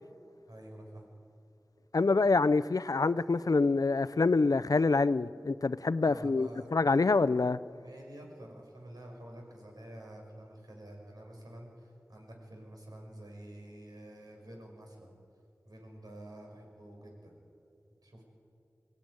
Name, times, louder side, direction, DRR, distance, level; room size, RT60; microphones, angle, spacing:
voice 1, 0.5-1.1 6.0-6.7 7.8-15.1 15.6-17.3 18.0-18.2, right 1 dB, 70° right, 5.9 m, -49 dB
voice 2, 1.9-7.6, left 3 dB, 60° left, 0.5 m, -26 dB
22.5 x 16.0 x 9.7 m
wide cardioid pair, 50°, 7 cm